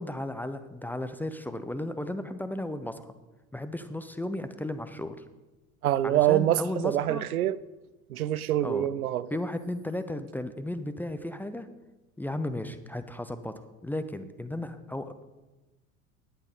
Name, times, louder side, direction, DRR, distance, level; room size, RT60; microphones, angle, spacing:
voice 1, 0.0-3.1 3.5-5.2 6.0-7.2 8.6-8.9 9.3-11.7 12.2-15.2, left 1 dB, 5° left, 10 dB, 0.5 m, -35 dB
voice 2, 5.8-7.6 8.1-9.3, right 12 dB, 80° right, 18 dB, 0.5 m, -25 dB
11.0 x 8.5 x 5.0 m, 1.1 s
figure-of-eight pair, 75°, 42 cm